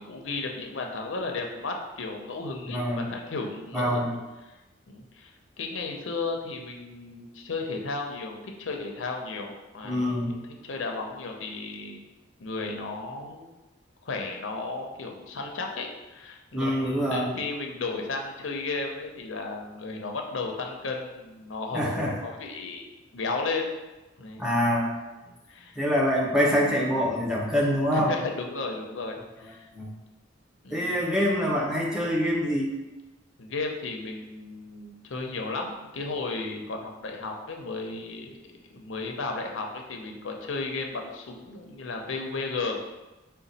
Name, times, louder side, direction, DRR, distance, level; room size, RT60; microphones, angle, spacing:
voice 1, 0.0-4.1 4.4-4.5 4.9-5.3 5.6-10.2 10.5-12.0 12.4-13.5 14.0-23.7 24.2-24.5 25.3-25.8 27.9-29.7 30.6-31.0 33.4-38.3 38.7-42.8, left 3 dB, 80° left, 2 dB, 0.6 m, -34 dB
voice 2, 2.7-3.1 3.7-4.1 9.8-10.3 16.5-17.3 21.7-22.1 24.4-24.9 25.8-28.1 29.4-29.9 30.7-32.7, equal, 5° right, -4 dB, 0.8 m, -25 dB
5.1 x 2.2 x 4.0 m, 1.1 s
head